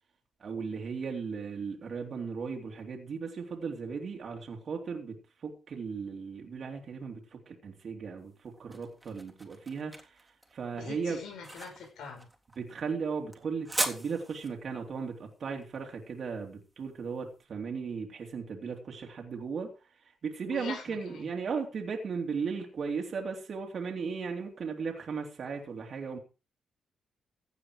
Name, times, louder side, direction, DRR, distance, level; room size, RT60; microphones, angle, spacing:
voice 1, 0.4-10.3 10.5-11.2 12.6-26.2, right 5 dB, 60° right, 1 dB, 3.1 m, -36 dB
sound 1, 8.2-17.2, right 1 dB, 15° right, 3.4 m, -40 dB
voice 2, 10.7-12.3 20.5-21.3, left 5 dB, 85° left, 4 dB, 6.0 m, -43 dB
16.0 x 9.6 x 5.0 m, 0.34 s
cardioid pair, 75°, 0 cm